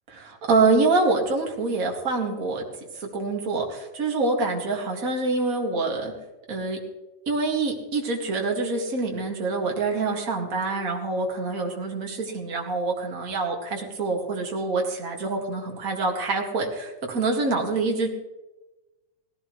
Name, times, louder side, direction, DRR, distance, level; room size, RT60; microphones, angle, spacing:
voice 1, 0.1-2.6 2.9-6.1 6.5-6.8 7.3-18.1, right 3 dB, 30° right, 0 dB, 2.0 m, -26 dB
18.5 x 16.0 x 3.2 m, 1.1 s
omnidirectional pair, 3.4 m